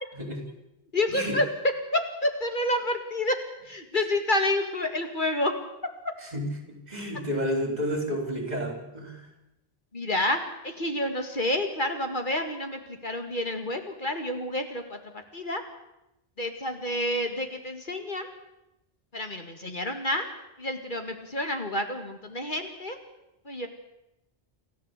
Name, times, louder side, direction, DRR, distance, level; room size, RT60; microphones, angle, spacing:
voice 1, 0.9-1.4 1.9-3.4 3.7-5.5 9.9-15.0 15.3-15.6 16.4-18.3 19.1-20.2 20.6-23.0 23.5-23.7, left 1 dB, 50° left, 6 dB, 2.2 m, -29 dB
voice 2, 6.2-9.3, equal, 40° right, 3 dB, 4.6 m, -31 dB
28.5 x 13.5 x 8.3 m, 0.91 s
omnidirectional pair, 1.1 m